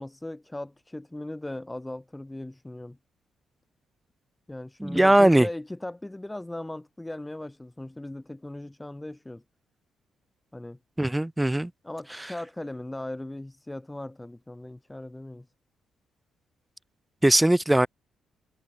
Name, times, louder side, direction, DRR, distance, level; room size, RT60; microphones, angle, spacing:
voice 1, 0.0-3.0 4.5-9.4 10.5-10.8 11.8-15.5, left 1 dB, 10° left, 5.8 m, -38 dB
voice 2, 4.8-5.5 11.0-11.7 17.2-17.9, right 1 dB, 10° right, 2.1 m, -20 dB
cardioid pair, 90°, 0 cm